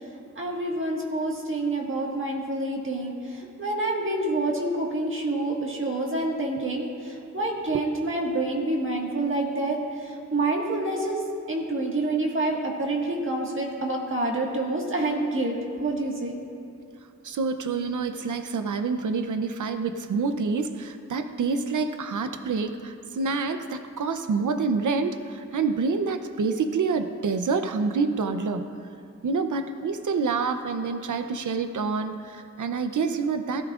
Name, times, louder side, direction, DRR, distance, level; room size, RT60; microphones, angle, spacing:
voice 1, 0.3-16.4, right 2 dB, 45° right, -1 dB, 1.7 m, -27 dB
voice 2, 17.2-28.6 29.2-33.6, right 4 dB, 90° right, 8 dB, 0.7 m, -27 dB
17.0 x 14.5 x 2.5 m, 2.5 s
wide cardioid pair, 125°, 29 cm